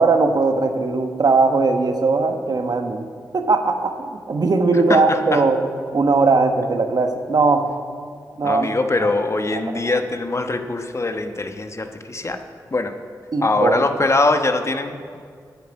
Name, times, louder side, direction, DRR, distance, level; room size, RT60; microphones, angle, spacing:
voice 1, 0.0-3.1 3.3-5.6 5.9-7.7 8.4-8.7 9.0-9.1 9.5-9.9 13.3-13.9, right 3 dB, 60° right, 6 dB, 1.2 m, -19 dB
voice 2, 4.9-5.4 8.4-12.4 12.7-12.9 13.4-15.2, left 2 dB, 40° left, 7 dB, 1.1 m, -22 dB
10.5 x 7.6 x 8.7 m, 2.1 s
cardioid pair, 45°, 7 cm